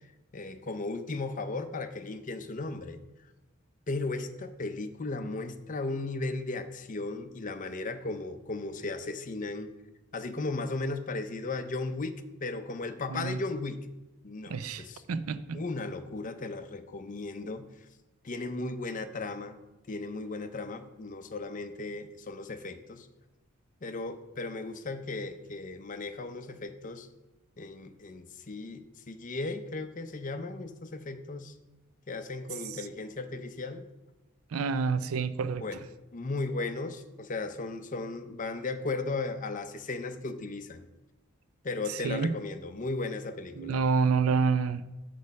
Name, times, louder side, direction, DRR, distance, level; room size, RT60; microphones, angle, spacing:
voice 1, 0.3-3.0 3.9-9.7 10.1-13.8 14.2-15.0 15.5-17.7 18.2-19.6 19.9-23.1 23.8-27.1 27.6-31.6 32.1-33.9 35.6-35.8 36.1-40.8 41.6-43.8, left 3 dB, 40° left, 8 dB, 0.6 m, -36 dB
voice 2, 14.5-15.6 32.7-32.8 34.5-35.6 41.9-42.4 43.6-44.8, right 5 dB, 85° right, 14 dB, 0.4 m, -28 dB
8.2 x 6.3 x 5.3 m, 1.1 s
head